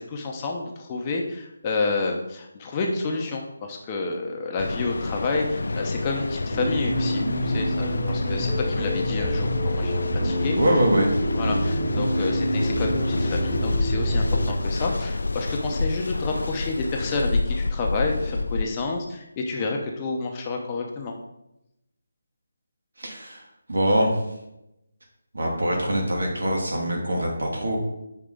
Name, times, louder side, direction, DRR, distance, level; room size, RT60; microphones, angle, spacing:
voice 1, 0.0-9.9 10.2-10.6 11.4-21.1, left 3 dB, 25° left, 0 dB, 0.8 m, -29 dB
Mechanical fan, 4.6-18.6, left 3 dB, 75° left, 0.4 m, -29 dB
sound 1, 6.5-14.5, equal, 5° right, 1.6 m, -26 dB
voice 2, 10.6-11.1 11.4-11.6 23.0-23.4 23.7-24.2 25.3-27.8, right 1 dB, 70° right, 0 dB, 2.0 m, -23 dB
6.7 x 4.6 x 3.8 m, 0.86 s
figure-of-eight pair, 160°, 0 cm